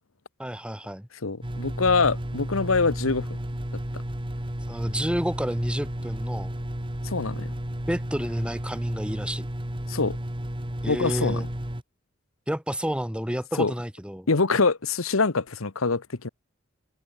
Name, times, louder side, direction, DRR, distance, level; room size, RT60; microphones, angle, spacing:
voice 1, 0.4-1.1 4.7-6.5 7.9-9.5 10.8-11.5 12.5-14.3, equal, 5° right, 2.1 m, -30 dB
voice 2, 1.2-3.3 7.0-7.5 9.9-10.2 10.9-11.4 13.6-13.7 14.3-16.3, left 4 dB, 85° left, 1.2 m, -24 dB
sound 1, 1.4-11.8, right 1 dB, 25° right, 2.1 m, -33 dB
head